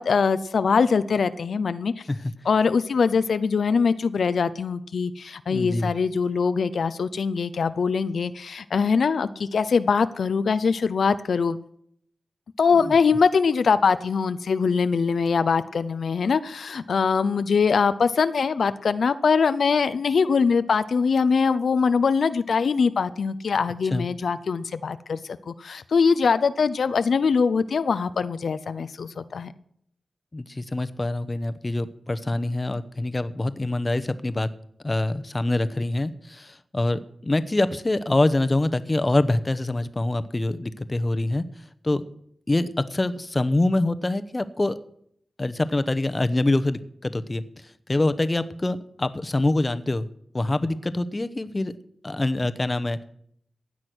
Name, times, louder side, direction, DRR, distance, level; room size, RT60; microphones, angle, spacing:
voice 1, 0.0-2.0 2.4-11.6 12.6-29.5, left 5 dB, 80° left, 13 dB, 0.6 m, -22 dB
voice 2, 5.5-5.9 23.9-24.1 30.3-34.5 34.8-41.4 41.8-42.0 42.5-44.8 45.4-47.4 47.9-50.1 50.3-51.7 52.0-53.0, left 2 dB, 25° left, 12 dB, 1.0 m, -25 dB
16.0 x 9.7 x 6.2 m, 0.67 s
wide cardioid pair, 85°, 0 cm